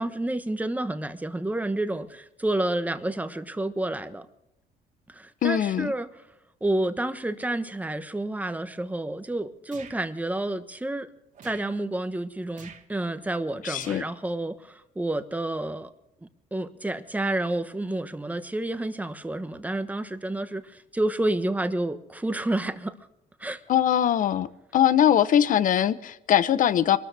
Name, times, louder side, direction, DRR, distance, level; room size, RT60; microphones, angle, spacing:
voice 1, 0.0-4.3 5.1-6.1 6.6-11.1 11.4-15.9 16.2-23.0 23.4-23.6, right 1 dB, 10° right, 1.1 m, -29 dB
voice 2, 5.4-5.9 13.6-14.0 23.7-24.5 24.7-27.0, left 10 dB, 50° left, 0.8 m, -21 dB
sound 1, 9.7-10.0 11.3-11.7 12.5-12.8 13.8-14.2, right 7 dB, 50° right, 2.0 m, -46 dB
24.5 x 13.5 x 3.4 m
cardioid pair, 110°, 17 cm